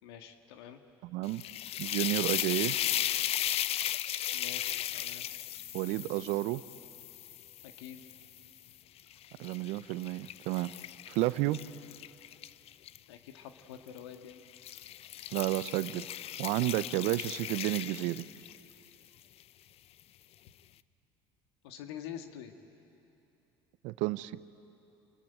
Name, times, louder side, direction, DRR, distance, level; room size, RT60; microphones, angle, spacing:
voice 1, 0.0-0.8 4.3-5.2 7.6-8.0 13.1-14.4 21.6-22.5, left 9 dB, 75° left, 7 dB, 1.7 m, -46 dB
voice 2, 1.0-1.4 1.8-2.8 5.7-6.6 9.4-10.7 11.1-11.6 15.3-16.1 16.4-18.2 23.8-24.3, right 18 dB, 65° right, 17 dB, 0.6 m, -31 dB
sound 1, 1.2-8.5 9.0-13.0 13.9-14.1 14.5-18.7, left 12 dB, 50° left, 0.6 m, -36 dB
29.5 x 21.5 x 9.2 m, 2.9 s
hypercardioid pair, 70°, 13 cm